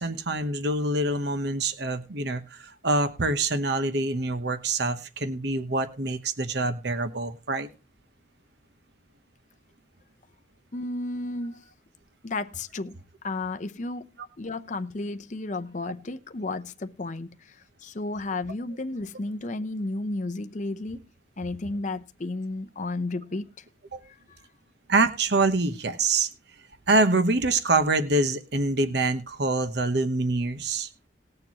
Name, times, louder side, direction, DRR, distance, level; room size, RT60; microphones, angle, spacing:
voice 1, 0.0-7.7 23.9-24.0 24.9-26.3 26.9-30.9, right 2 dB, 60° right, 1.0 m, -25 dB
voice 2, 10.7-11.6 12.2-13.0 13.2-21.1 21.4-23.6 24.0-24.4, left 2 dB, 40° left, 0.6 m, -33 dB
19.5 x 6.8 x 2.9 m
head